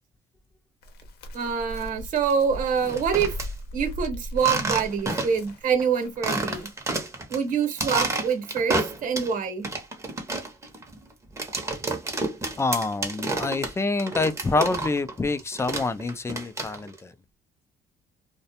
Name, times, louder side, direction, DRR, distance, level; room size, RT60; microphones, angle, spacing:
Chirp tweet, 0.8-7.0, equal, 70° left, 0.7 m, -38 dB
voice 1, 1.3-3.4 3.7-6.7 7.3-9.7, right 6 dB, 50° right, 0.9 m, -25 dB
sound 1, 2.8-3.5 4.4-5.5 5.8-5.9 6.2-7.4 7.7-9.3 9.6-15.1 15.4-17.0, right 2 dB, 15° right, 0.7 m, -29 dB
voice 2, 12.6-17.1, left 3 dB, 15° left, 0.4 m, -27 dB
2.3 x 2.1 x 2.8 m
cardioid pair, 110°, 17 cm